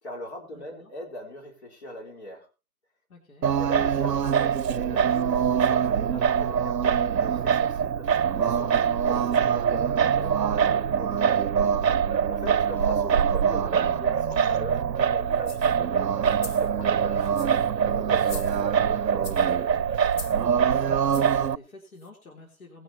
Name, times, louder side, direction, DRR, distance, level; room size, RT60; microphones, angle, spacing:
voice 1, 0.0-2.5 3.5-8.1 8.4-11.3 12.3-17.4 17.8-19.8, left 1 dB, 40° left, 0 dB, 3.8 m, -41 dB
voice 2, 0.5-0.9 3.1-3.5 8.7-9.1 12.2-12.5 16.9-17.6 20.5-22.8, left 2 dB, 55° left, 0 dB, 3.6 m, -49 dB
Singing, 3.4-21.6, right 8 dB, 85° right, 0.7 m, -23 dB
sound 1, 7.1-13.9, right 10 dB, 25° right, 5.0 m, -44 dB
sound 2, 15.4-15.8 16.2-16.7 17.2-17.7 18.1-18.8 19.2-19.5 20.1-20.4 21.1-21.4 22.0-22.1, left 4 dB, 75° left, 2.0 m, -42 dB
20.0 x 10.5 x 2.9 m, 0.30 s
figure-of-eight pair, 155°, 50 cm